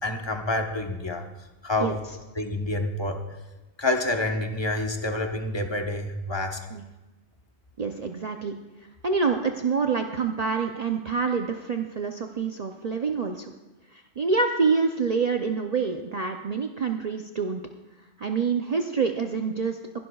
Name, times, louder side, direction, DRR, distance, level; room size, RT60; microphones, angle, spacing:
voice 1, 0.0-1.2 1.6-2.0 2.3-3.2 3.8-6.6, left 2 dB, 25° left, 3 dB, 1.0 m, -28 dB
voice 2, 7.8-8.6 9.0-13.5 13.9-17.6 18.2-19.8, right 5 dB, 45° right, 4 dB, 0.6 m, -26 dB
21.0 x 11.5 x 2.3 m, 1.1 s
omnidirectional pair, 1.2 m